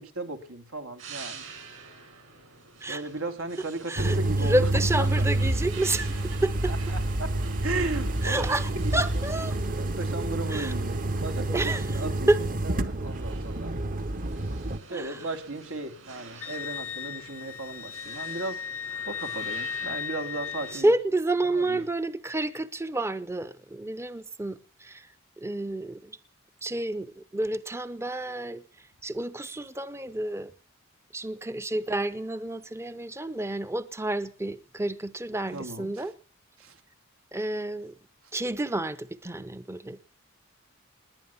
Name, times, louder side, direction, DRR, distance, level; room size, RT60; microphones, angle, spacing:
voice 1, 0.0-1.5 2.9-5.3 6.7-9.0 9.8-12.3 12.6-13.7 14.9-18.6 19.0-20.9 21.4-21.8 35.5-36.0 36.6-36.8, right 2 dB, 80° right, 2.6 m, -36 dB
sound 1, 1.0-20.8, right 4 dB, 65° right, 7.0 m, -47 dB
voice 2, 3.6-6.7 8.2-9.6 10.5-10.7 11.5-12.0 12.3-12.4 14.9-15.2 16.4-16.5 20.7-25.1 25.4-26.1 26.6-28.6 29.0-30.5 31.1-36.1 37.3-37.9 38.3-40.0, right 2 dB, 15° right, 0.7 m, -29 dB
sound 2, 4.0-14.8, right 1 dB, 40° right, 1.2 m, -28 dB
Wind instrument woodwind instrument, 16.4-20.9, left 8 dB, 80° left, 0.8 m, -36 dB
20.5 x 9.7 x 7.0 m
head